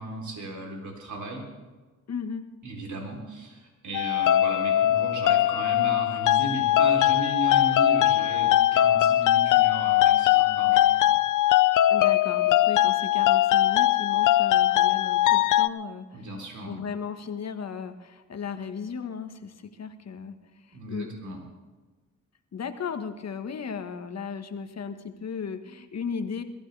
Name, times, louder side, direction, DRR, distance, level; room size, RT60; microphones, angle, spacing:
voice 1, 0.0-1.4 2.6-11.1 16.1-16.8 20.7-21.4, right 1 dB, 65° right, 0 dB, 3.7 m, -36 dB
voice 2, 2.1-2.4 11.9-16.0 16.6-20.3 20.9-21.1 22.5-26.4, left 6 dB, 55° left, 8 dB, 1.5 m, -35 dB
sound 1, 3.9-15.7, left 13 dB, 75° left, 0.5 m, -21 dB
22.0 x 14.5 x 3.4 m, 1.3 s
cardioid pair, 65°, 31 cm